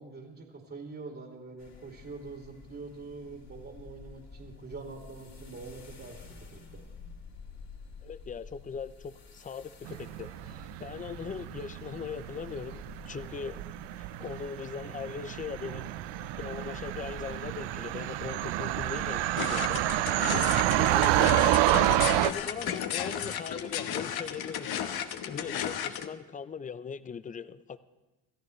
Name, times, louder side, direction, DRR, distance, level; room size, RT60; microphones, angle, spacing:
voice 1, 0.0-6.2 6.5-6.8, right 3 dB, 30° right, 0 dB, 2.6 m, -44 dB
sound 1, 1.6-20.1, left 4 dB, 35° left, 2.5 m, -50 dB
voice 2, 8.0-12.8 13.1-13.6 14.0-15.9 16.4-19.8 20.8-24.9 25.2-27.8, left 6 dB, 20° left, 14 dB, 0.5 m, -40 dB
sound 2, 9.8-22.3, right 15 dB, 75° right, 0.6 m, -29 dB
sound 3, 19.4-26.1, left 9 dB, 60° left, 1.1 m, -34 dB
27.5 x 14.0 x 3.2 m, 1.1 s
cardioid pair, 110°, 43 cm